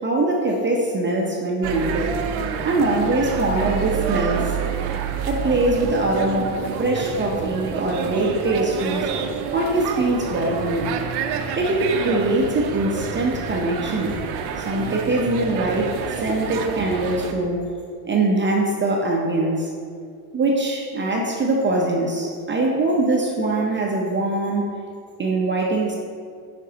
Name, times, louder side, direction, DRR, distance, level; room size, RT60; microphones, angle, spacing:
voice 1, 0.0-2.1 2.6-4.5 5.3-9.0 9.5-10.9 11.6-14.2 14.6-17.6 18.0-19.7 20.3-24.7 25.2-26.0, right 2 dB, 25° right, -1 dB, 0.7 m, -22 dB
sound 1, 1.6-17.3, right 6 dB, 55° right, 0.7 m, -28 dB
7.2 x 5.1 x 2.8 m, 2.3 s
hypercardioid pair, 85°, 49 cm